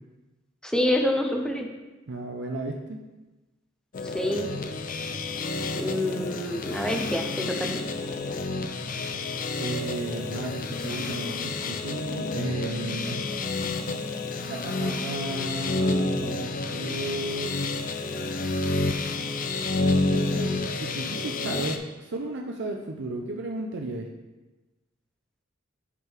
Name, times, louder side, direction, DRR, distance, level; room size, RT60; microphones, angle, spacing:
voice 1, 0.6-1.7 4.0-4.5 5.7-7.8, left 1 dB, 5° left, 2 dB, 0.7 m, -27 dB
voice 2, 2.1-3.0 9.6-13.3 14.5-17.6 19.4-24.1, right 2 dB, 65° right, 1 dB, 0.6 m, -34 dB
sound 1, 3.9-21.8, left 3 dB, 45° left, 0.5 m, -29 dB
8.2 x 3.8 x 4.5 m, 1.1 s
head